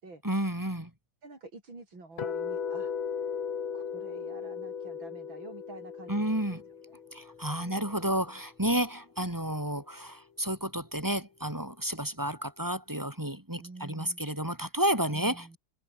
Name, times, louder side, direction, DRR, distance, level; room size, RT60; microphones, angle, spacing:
voice 1, 0.2-0.9 6.1-6.6 7.1-15.6, right 1 dB, 10° right, 3.2 m, -31 dB
voice 2, 1.2-2.9 3.7-6.6 6.9-7.0 7.6-7.8 13.6-14.2 15.1-15.6, right 3 dB, 80° right, 7.0 m, -48 dB
sound 1, 2.2-8.3, left 7 dB, 85° left, 2.9 m, -37 dB
omnidirectional pair, 2.1 m